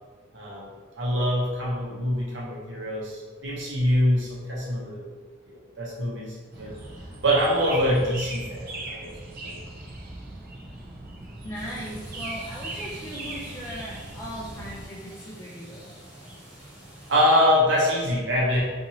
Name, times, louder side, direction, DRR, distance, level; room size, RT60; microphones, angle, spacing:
voice 1, 0.3-0.7 1.0-5.0 5.5-6.8 7.2-9.1 9.4-9.6 17.1-18.6, equal, 75° right, -4 dB, 0.8 m, -24 dB
sound 1, 6.5-14.9, right 2 dB, 50° right, 0.5 m, -39 dB
voice 2, 11.4-15.9, equal, 15° left, -5 dB, 0.3 m, -38 dB
sound 2, 11.5-17.2, right 1 dB, 5° right, 0.8 m, -46 dB
2.9 x 2.6 x 2.7 m, 1.4 s
head